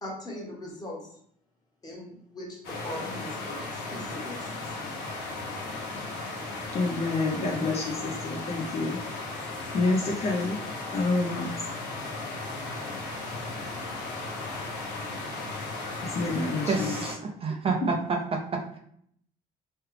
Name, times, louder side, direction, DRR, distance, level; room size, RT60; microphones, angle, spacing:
voice 1, 0.0-1.1 1.8-4.8, left 1 dB, 25° left, -3 dB, 1.2 m, -40 dB
sound 1, 2.6-17.1, left 2 dB, 85° left, 0.9 m, -36 dB
voice 2, 6.7-9.0 9.7-10.6 10.9-11.5 16.0-17.0, left 3 dB, 40° left, -1 dB, 0.5 m, -28 dB
voice 3, 16.7-18.0 18.3-18.8, right 4 dB, 35° right, 1 dB, 0.4 m, -29 dB
3.2 x 2.4 x 3.2 m, 0.66 s
cardioid pair, 110°, 17 cm